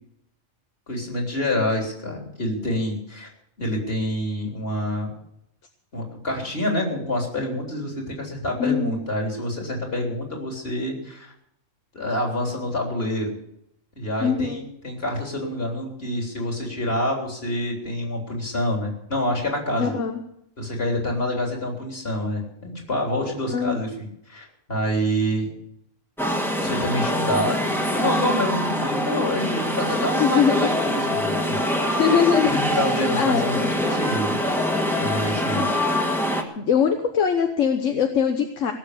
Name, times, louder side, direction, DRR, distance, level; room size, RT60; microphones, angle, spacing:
voice 1, 0.9-3.3 3.6-5.1 5.9-11.3 11.9-13.3 14.0-19.9 20.6-25.5 26.6-31.6 32.4-34.4 35.0-35.7, left 1 dB, 50° left, 0 dB, 3.9 m, -27 dB
voice 2, 8.6-9.0 14.2-14.6 19.8-20.2 23.5-23.8 30.2-30.7 31.9-32.8 33.1-33.8 35.7-36.1 36.6-38.7, left 7 dB, 75° left, 5 dB, 1.4 m, -22 dB
sound 1, 26.2-36.4, equal, ahead, 1.6 m, -24 dB
18.0 x 7.6 x 8.3 m, 0.74 s
omnidirectional pair, 1.3 m